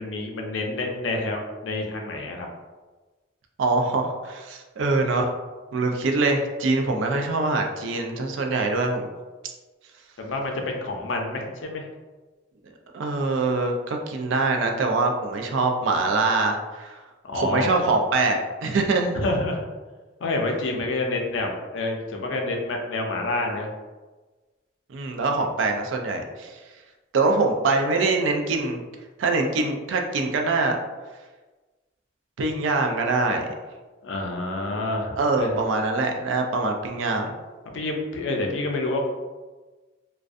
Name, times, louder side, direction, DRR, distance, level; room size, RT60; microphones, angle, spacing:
voice 1, 0.0-2.5 10.2-11.9 17.2-17.7 19.1-19.6 20.2-23.7 34.0-35.6 37.7-39.1, left 2 dB, 80° left, 1 dB, 0.5 m, -28 dB
voice 2, 3.6-5.3 5.7-9.1 12.9-17.0 17.3-19.2 24.9-26.6 27.1-28.8 29.2-30.8 32.4-33.5 35.2-37.3, right 3 dB, 80° right, 3 dB, 0.4 m, -24 dB
2.4 x 2.2 x 2.5 m, 1.3 s
head